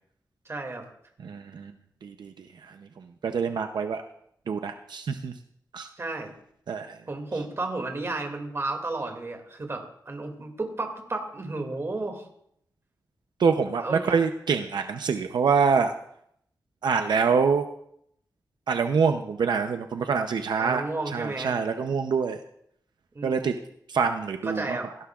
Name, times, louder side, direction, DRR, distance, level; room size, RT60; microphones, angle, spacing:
voice 1, 0.5-0.8 6.0-6.3 7.1-12.3 13.8-14.1 20.6-21.5 23.1-23.5 24.4-24.9, right 2 dB, 35° right, 3 dB, 2.3 m, -32 dB
voice 2, 1.2-1.7 2.0-4.0 4.5-5.3 5.7-5.9 6.7-7.0 13.4-15.9 16.8-17.7 18.7-20.8 21.1-22.4 23.2-23.5 23.9-24.8, right 5 dB, 90° right, 6 dB, 0.6 m, -25 dB
17.5 x 15.0 x 2.4 m, 0.71 s
wide cardioid pair, 120°, 7 cm